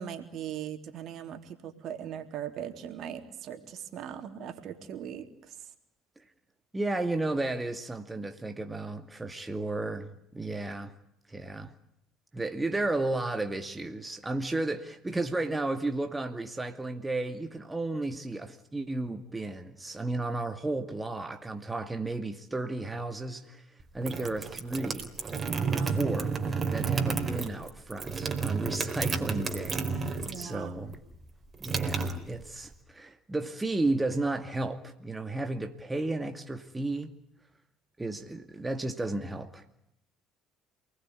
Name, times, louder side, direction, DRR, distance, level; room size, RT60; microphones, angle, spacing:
voice 1, 0.0-5.6 25.5-25.9 30.3-30.7, right 9 dB, 55° right, 3.6 m, -40 dB
voice 2, 6.7-10.9 11.3-11.7 12.3-23.6 23.9-25.1 25.7-26.3 26.7-31.0 31.6-37.1 38.0-39.6, right 2 dB, 15° right, 2.3 m, -33 dB
sound 1, 23.8-30.6 30.9-32.7, right 5 dB, 30° right, 4.3 m, -31 dB
29.0 x 20.0 x 9.7 m
hypercardioid pair, 70°, 0 cm